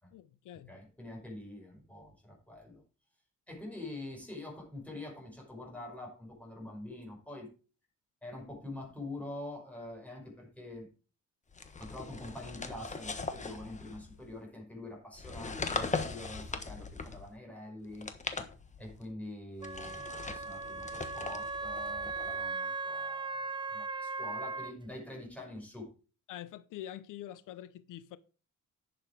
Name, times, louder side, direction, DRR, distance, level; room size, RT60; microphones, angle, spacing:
voice 1, 0.1-0.8 26.3-28.2, left 12 dB, 85° left, 0.7 m, -45 dB
voice 2, 0.7-2.8 3.5-7.5 8.2-10.9 11.8-18.1 18.8-25.9, left 1 dB, 5° left, 5.2 m, -45 dB
sound 1, 11.5-14.3 15.1-17.3 17.9-19.0 19.6-22.5, left 4 dB, 25° left, 1.3 m, -40 dB
Wind instrument woodwind instrument, 19.6-24.7, right 4 dB, 15° right, 0.6 m, -38 dB
11.0 x 7.1 x 4.7 m
cardioid pair, 125°, 31 cm